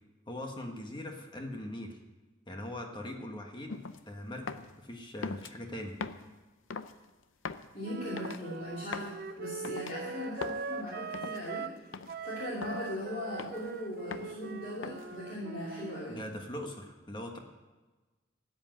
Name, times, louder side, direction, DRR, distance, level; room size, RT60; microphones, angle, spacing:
voice 1, 0.3-2.0 2.5-5.9 16.1-17.4, left 1 dB, 25° left, 2 dB, 1.4 m, -41 dB
sound 1, 3.7-4.0 4.5-4.7 5.2-5.5 6.0-6.3 6.7-7.0 7.5-7.7 8.2-8.4 8.9-9.2 9.6-9.9 10.4-10.6 11.1-11.4 11.9-12.2 12.6-12.9 13.4-13.7 14.1-14.4 14.8-15.2, left 4 dB, 80° left, 0.6 m, -40 dB
voice 2, 7.7-11.7 12.2-16.2, left 1 dB, 45° left, -6 dB, 2.7 m, -39 dB
Wind instrument woodwind instrument, 7.8-11.8 12.1-16.0, right 5 dB, 50° right, 0.5 m, -41 dB
13.0 x 8.0 x 9.0 m, 1.2 s
head